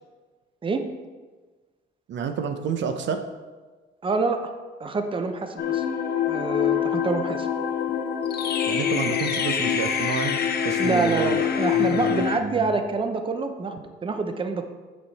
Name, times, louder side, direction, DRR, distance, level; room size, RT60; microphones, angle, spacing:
voice 1, 2.1-3.2 8.7-11.4 11.7-12.2, right 6 dB, 65° right, 7 dB, 0.7 m, -29 dB
voice 2, 4.0-4.5 4.8-5.8 6.3-7.5 10.8-14.6, right 3 dB, 25° right, 6 dB, 0.7 m, -26 dB
sound 1, 5.6-12.4, left 8 dB, 55° left, 0.7 m, -25 dB
6.4 x 6.2 x 4.1 m, 1.3 s
cardioid pair, 90°, 20 cm